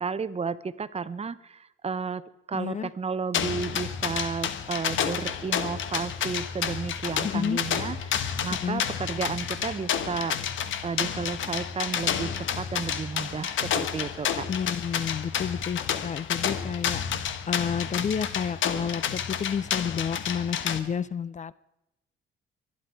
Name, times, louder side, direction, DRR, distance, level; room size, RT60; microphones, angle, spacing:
voice 1, 0.0-2.2 2.5-14.5, right 5 dB, 30° right, 15 dB, 0.8 m, -33 dB
voice 2, 2.5-2.9 7.2-7.6 8.6-8.8 14.5-17.0 17.5-21.5, left 7 dB, 35° left, 19 dB, 0.5 m, -30 dB
sound 1, 3.3-20.8, left 8 dB, 75° left, 1.2 m, -30 dB
23.5 x 11.0 x 4.7 m, 0.92 s
cardioid pair, 90°, 20 cm